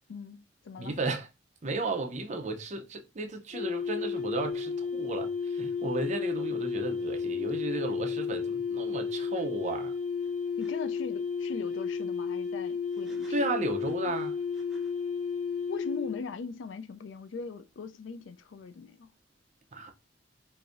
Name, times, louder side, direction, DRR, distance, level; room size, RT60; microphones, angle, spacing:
voice 1, 0.1-1.0 10.6-13.4 15.7-19.1, left 4 dB, 75° left, 0.4 m, -40 dB
voice 2, 0.8-1.3 1.6-9.9 13.3-14.4 19.7-19.9, right 2 dB, 40° right, 0.6 m, -34 dB
sound 1, 3.5-16.2, left 5 dB, 40° left, 0.7 m, -33 dB
sound 2, 10.2-10.3 10.6-10.7 12.9-15.0, right 1 dB, ahead, 0.9 m, -51 dB
4.7 x 2.6 x 2.5 m
head